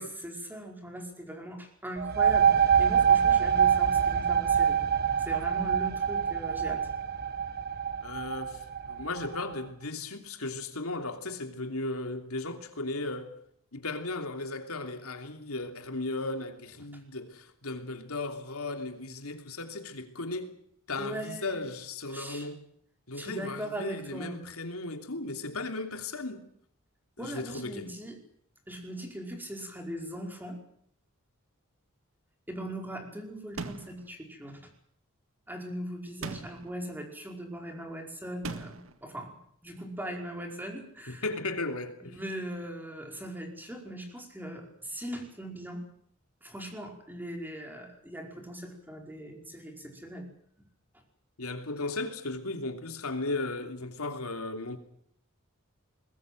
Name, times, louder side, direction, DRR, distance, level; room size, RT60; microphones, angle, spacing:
voice 1, 0.2-4.8 5.2-6.9 21.0-21.6 22.1-22.5 23.1-24.4 27.2-28.2 28.7-30.6 32.5-34.6 35.5-39.3 39.6-41.2 42.0-45.8 46.4-50.3, right 1 dB, 10° right, 5.0 m, -40 dB
sound 1, 2.0-9.4, right 7 dB, 50° right, 1.3 m, -25 dB
voice 2, 8.0-13.3 13.7-20.6 20.9-22.6 23.1-26.5 27.2-27.9 41.1-42.2 51.4-54.8, left 2 dB, 85° left, 3.0 m, -36 dB
sound 2, 33.6-34.1 36.2-36.8 38.4-38.9, right 3 dB, 70° right, 1.9 m, -38 dB
22.0 x 20.0 x 7.9 m
head